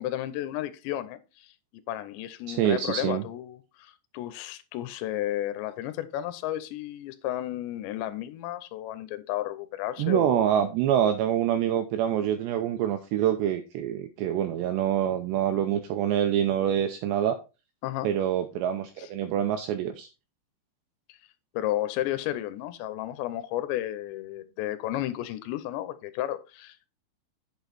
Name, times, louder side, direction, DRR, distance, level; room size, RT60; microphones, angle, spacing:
voice 1, 0.0-1.5 1.9-10.6 17.8-18.1 19.0-19.1 21.1-21.2 21.5-26.9, left 13 dB, 80° left, 2.8 m, -33 dB
voice 2, 2.5-3.2 10.0-17.4 18.0-20.1, right 10 dB, 85° right, 2.5 m, -26 dB
8.5 x 6.2 x 4.2 m
omnidirectional pair, 5.8 m